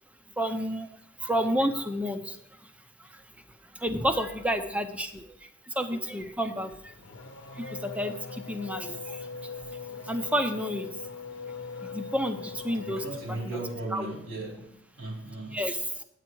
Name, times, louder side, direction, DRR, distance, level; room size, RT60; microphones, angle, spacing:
voice 1, 0.4-2.4 2.6-2.7 3.0-3.2 3.7-6.9 7.5-9.5 10.1-10.9 11.8-13.6 13.9-14.1 15.5-15.8, equal, 5° right, 7 dB, 0.7 m, -31 dB
Race car auto racing / Accelerating revving vroom, 6.6-13.8, left 4 dB, 65° left, 1.0 m, -41 dB
voice 2, 12.7-15.6, right 2 dB, 90° right, -1 dB, 3.8 m, -37 dB
9.3 x 8.6 x 4.7 m, 0.78 s
head